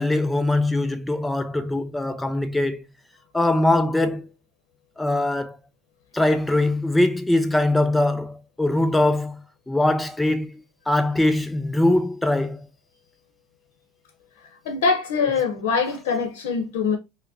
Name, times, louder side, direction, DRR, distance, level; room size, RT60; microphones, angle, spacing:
voice 1, 0.0-2.8 3.3-4.3 5.0-5.6 6.1-9.4 9.7-10.6 10.9-12.6, left 1 dB, 5° left, 0.4 m, -22 dB
voice 2, 14.7-17.0, left 5 dB, 85° left, 0.7 m, -23 dB
4.7 x 2.1 x 2.6 m
supercardioid pair, 120°, 0 cm